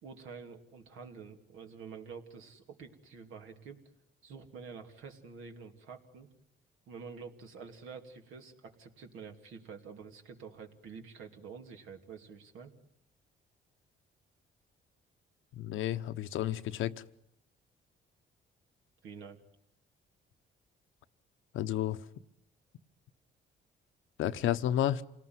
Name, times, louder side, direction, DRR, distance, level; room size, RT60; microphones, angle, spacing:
voice 1, 0.0-3.8 4.2-6.3 6.9-12.7 19.0-19.4, right 5 dB, 85° right, 4 dB, 2.8 m, -48 dB
voice 2, 15.5-16.9 21.5-22.0 24.2-25.0, left 12 dB, 80° left, 12 dB, 0.9 m, -31 dB
28.0 x 18.5 x 9.6 m, 0.79 s
cardioid pair, 90°, 20 cm